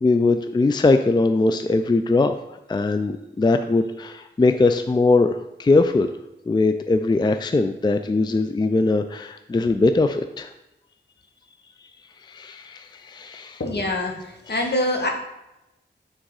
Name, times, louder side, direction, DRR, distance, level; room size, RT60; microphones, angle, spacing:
voice 1, 0.0-2.3 2.7-6.1 6.5-10.5 12.3-13.6, left 3 dB, 25° left, 8 dB, 0.3 m, -20 dB
voice 2, 13.6-15.1, left 1 dB, 65° left, 2 dB, 1.2 m, -25 dB
6.3 x 3.7 x 4.8 m, 0.91 s
wide cardioid pair, 55°, 19 cm